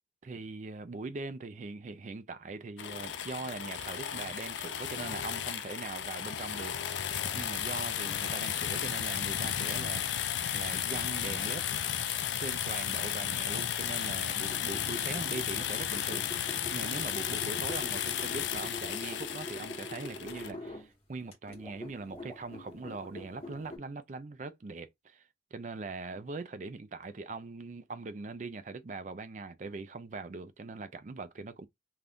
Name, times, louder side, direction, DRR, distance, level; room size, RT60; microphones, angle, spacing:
voice 1, 0.2-11.9 12.4-31.7, right 3 dB, 40° right, 0.4 m, -41 dB
sound 1, 2.8-20.5, left 9 dB, 70° left, 0.4 m, -34 dB
sound 2, 14.4-20.9 21.3-23.8, left 1 dB, 35° left, 1.2 m, -45 dB
Water / Liquid, 19.9-20.3 20.6-23.2 23.4-23.7 24.0-24.1, right 1 dB, 10° left, 1.2 m, -57 dB
2.6 x 2.4 x 3.4 m
head